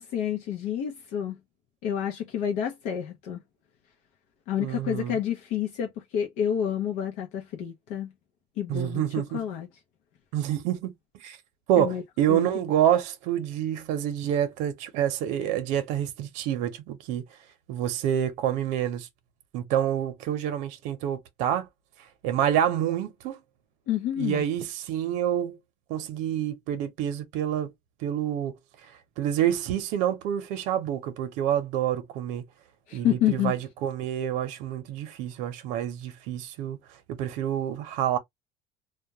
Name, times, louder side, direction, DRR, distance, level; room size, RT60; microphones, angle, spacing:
voice 1, 0.0-1.4 1.8-3.4 4.5-8.1 8.6-9.0 9.3-9.7 11.8-12.0 12.3-12.5 23.9-24.4 32.9-33.5, left 10 dB, 85° left, 0.6 m, -29 dB
voice 2, 4.6-5.2 8.7-9.4 10.3-10.9 11.2-11.4 11.7-17.2 17.7-19.1 19.5-21.7 22.2-23.4 24.2-25.6 25.9-27.7 28.0-28.5 29.2-32.4 32.9-36.8 37.1-38.2, right 10 dB, 85° right, 0.7 m, -27 dB
2.3 x 2.1 x 2.8 m
cardioid pair, 165°, 12 cm